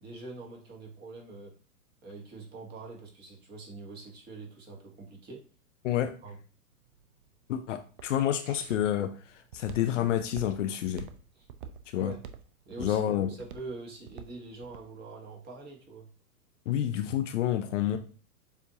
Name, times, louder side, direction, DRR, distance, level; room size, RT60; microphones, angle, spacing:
voice 1, 0.0-1.5 2.0-5.5 6.2-6.4 11.3-11.5 11.9-12.2 12.7-13.0 13.3-16.1, right 3 dB, 20° right, 0 dB, 1.4 m, -44 dB
Walk footsteps, 6.7-14.9, right 7 dB, 40° right, 0.4 m, -47 dB
voice 2, 7.5-9.1 9.5-11.1 11.9-12.1 12.8-13.3 16.7-18.0, left 11 dB, 55° left, 8 dB, 0.6 m, -28 dB
7.0 x 2.6 x 2.8 m, 0.37 s
hypercardioid pair, 125°, 45 cm